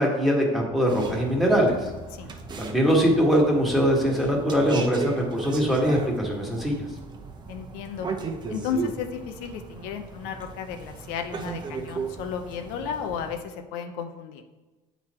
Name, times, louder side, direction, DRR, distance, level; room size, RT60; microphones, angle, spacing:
voice 1, 0.0-1.9 2.6-6.9, equal, ahead, -2 dB, 1.6 m, -22 dB
sound 1, 0.9-13.4, right 4 dB, 30° right, 0.8 m, -37 dB
voice 2, 7.5-8.1 8.5-14.4, left 7 dB, 85° left, 6 dB, 0.7 m, -33 dB
8.2 x 4.1 x 4.3 m, 1.1 s
cardioid pair, 120°, 16 cm